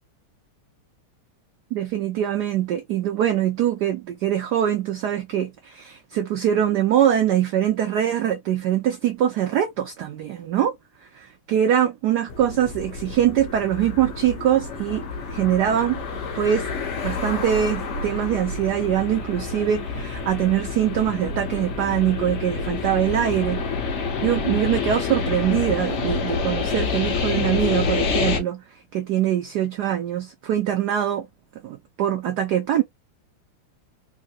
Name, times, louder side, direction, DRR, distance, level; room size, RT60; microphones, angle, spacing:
voice 1, 1.7-10.8 11.1-16.0 16.3-16.7 17.0-23.6 24.2-28.6 28.9-31.3 31.6-32.8, right 10 dB, 75° right, 1.0 m, -23 dB
sound 1, 12.3-28.4, left 4 dB, 55° left, 0.8 m, -28 dB
3.6 x 2.7 x 2.8 m
omnidirectional pair, 2.4 m